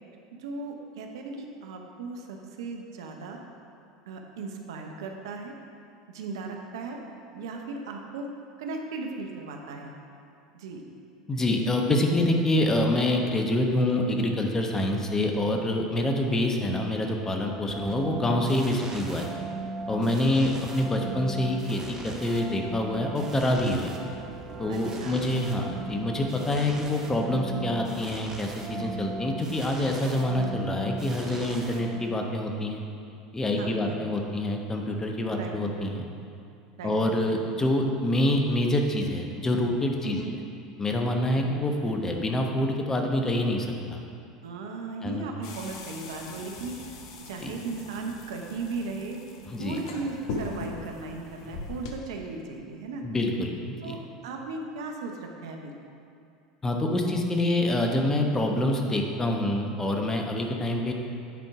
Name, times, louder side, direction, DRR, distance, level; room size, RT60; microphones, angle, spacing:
voice 1, 0.3-3.4 4.1-5.5 6.1-7.0 7.3-8.3 8.6-9.9 10.5-10.8 20.1-20.3 24.7-25.2 33.6-34.2 35.3-35.6 36.8-37.0 40.0-40.3 41.3-41.6 44.4-47.0 47.3-49.2 49.6-53.0 53.8-55.7, right 3 dB, 70° right, 2 dB, 0.8 m, -37 dB
voice 2, 11.3-19.3 19.9-23.9 24.6-32.8 33.3-36.1 36.8-40.2 40.8-44.0 45.0-45.2 47.4-47.6 49.5-49.8 53.0-54.0 56.6-60.9, left 1 dB, 20° left, 2 dB, 1.0 m, -26 dB
sound 1, 17.7-32.3, right 2 dB, 25° right, 1.1 m, -38 dB
sound 2, 45.4-51.9, left 3 dB, 65° left, 0.9 m, -40 dB
9.3 x 4.4 x 4.8 m, 2.5 s
hypercardioid pair, 80°, 3 cm